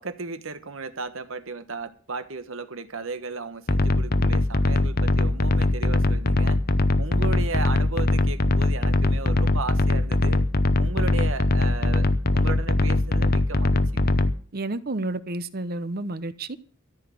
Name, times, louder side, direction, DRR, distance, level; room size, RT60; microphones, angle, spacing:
voice 1, 0.0-6.6 7.0-10.4 10.8-12.1 12.3-14.1, right 4 dB, 65° right, 1.2 m, -35 dB
sound 1, 3.7-14.3, left 2 dB, 45° left, 0.8 m, -21 dB
voice 2, 14.5-16.6, right 2 dB, 45° right, 0.9 m, -30 dB
14.0 x 6.3 x 9.2 m
head